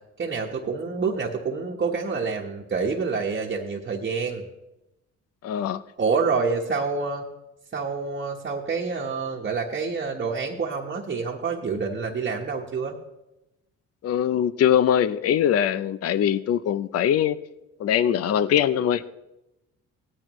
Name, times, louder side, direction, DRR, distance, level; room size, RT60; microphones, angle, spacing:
voice 1, 0.2-4.4 6.0-7.2 7.7-12.9, right 4 dB, 35° right, -2 dB, 1.2 m, -27 dB
voice 2, 5.4-5.8 14.0-17.4 17.8-19.0, left 9 dB, 55° left, 15 dB, 0.5 m, -22 dB
17.5 x 11.0 x 3.1 m, 0.93 s
cardioid pair, 90°, 30 cm